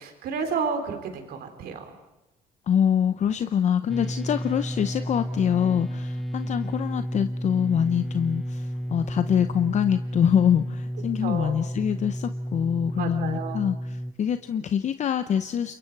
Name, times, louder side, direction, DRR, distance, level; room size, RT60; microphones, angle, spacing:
voice 1, 0.0-1.8 11.2-11.5 13.0-13.6, right 5 dB, 70° right, 6 dB, 3.7 m, -31 dB
voice 2, 2.7-15.8, left 8 dB, 45° left, 10 dB, 0.7 m, -25 dB
sound 1, 3.9-14.1, equal, ahead, 1.1 m, -32 dB
28.0 x 23.0 x 4.7 m, 1.0 s
cardioid pair, 110°, 17 cm